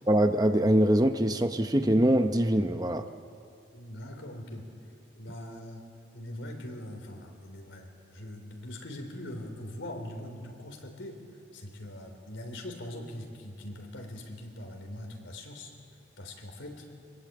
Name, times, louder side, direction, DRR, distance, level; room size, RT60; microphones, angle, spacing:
voice 1, 0.1-3.1, right 1 dB, 20° right, 8 dB, 0.7 m, -23 dB
voice 2, 3.7-4.7 5.1-5.9 6.1-11.2 11.5-15.7 16.2-16.9, left 1 dB, 85° left, 4 dB, 3.5 m, -42 dB
24.0 x 21.0 x 8.7 m, 2.4 s
head